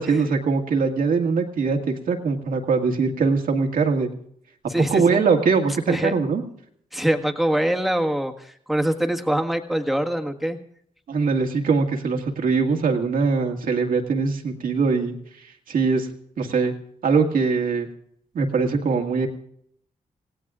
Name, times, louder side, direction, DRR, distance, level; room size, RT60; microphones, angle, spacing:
voice 1, 0.0-4.1 4.9-6.4 11.1-15.2 15.7-16.1 16.4-16.7 17.0-17.9 18.3-19.3, right 4 dB, 80° right, 2 dB, 1.9 m, -22 dB
voice 2, 4.7-5.2 5.9-6.2 6.9-10.6, right 1 dB, ahead, 4 dB, 1.6 m, -24 dB
26.5 x 17.0 x 2.5 m, 0.67 s
cardioid pair, 95°, 14 cm